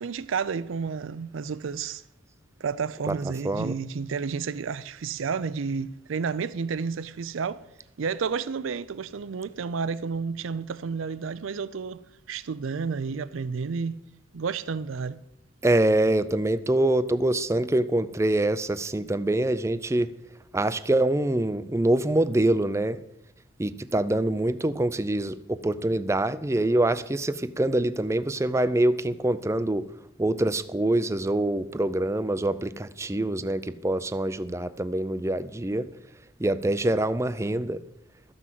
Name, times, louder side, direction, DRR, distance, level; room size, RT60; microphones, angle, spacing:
voice 1, 0.0-2.0 2.6-7.7 8.0-12.0 12.3-14.0 14.3-15.2, right 5 dB, 85° right, 0.5 m, -31 dB
voice 2, 3.0-3.8 15.6-20.1 20.5-23.0 23.6-29.9 30.2-35.9 36.4-37.8, right 1 dB, 15° right, 0.4 m, -25 dB
13.5 x 6.2 x 7.4 m
head